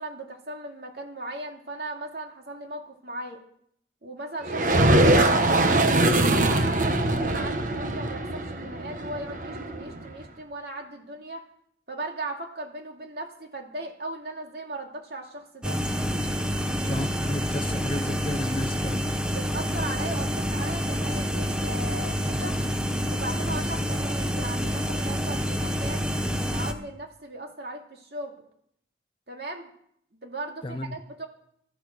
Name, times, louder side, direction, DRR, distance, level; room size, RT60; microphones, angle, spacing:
voice 1, 0.0-3.4 4.0-11.4 11.9-15.8 19.3-22.6 23.1-28.4 29.3-29.7 30.1-31.3, right 2 dB, 65° right, 2 dB, 2.5 m, -37 dB
sound 1, 4.4-10.1, right 2 dB, 50° right, 1.2 m, -22 dB
sound 2, 15.6-26.7, equal, 5° right, 1.0 m, -28 dB
voice 2, 16.8-19.1 30.6-31.0, left 1 dB, 30° left, 11 dB, 0.6 m, -32 dB
15.5 x 13.0 x 6.5 m, 0.70 s
head